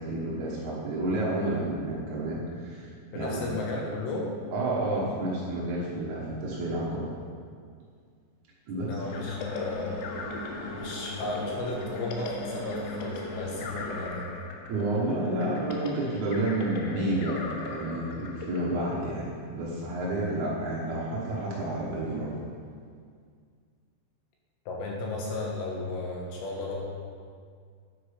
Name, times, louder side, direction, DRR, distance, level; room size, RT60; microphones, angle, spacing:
voice 1, 0.0-2.9 3.1-3.4 4.5-7.1 8.7-9.0 14.7-22.3, right 1 dB, 75° right, -5 dB, 1.7 m, -30 dB
voice 2, 3.1-4.3 8.8-9.9 10.7-14.3 24.7-26.8, left 2 dB, 70° left, -2 dB, 3.2 m, -34 dB
sound 1, 9.0-14.0, left 1 dB, 20° left, 1.8 m, -39 dB
sound 2, 9.1-19.7, left 4 dB, 85° left, 3.7 m, -40 dB
9.4 x 8.8 x 5.3 m, 2.1 s
omnidirectional pair, 5.8 m